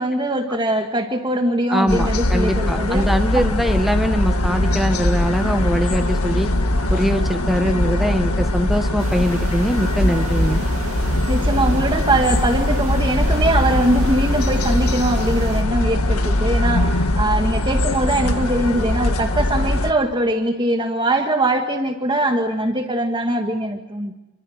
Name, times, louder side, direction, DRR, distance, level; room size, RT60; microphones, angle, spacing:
voice 1, 0.0-3.1 3.3-3.4 11.3-24.1, right 1 dB, 20° right, 4 dB, 1.8 m, -21 dB
voice 2, 1.7-6.5 6.9-10.6, equal, ahead, 6 dB, 1.5 m, -22 dB
sound 1, 1.9-19.9, left 1 dB, 80° left, 1.7 m, -21 dB
sound 2, 9.0-15.6, right 2 dB, 70° right, 2.5 m, -32 dB
27.0 x 24.5 x 8.1 m, 0.99 s
head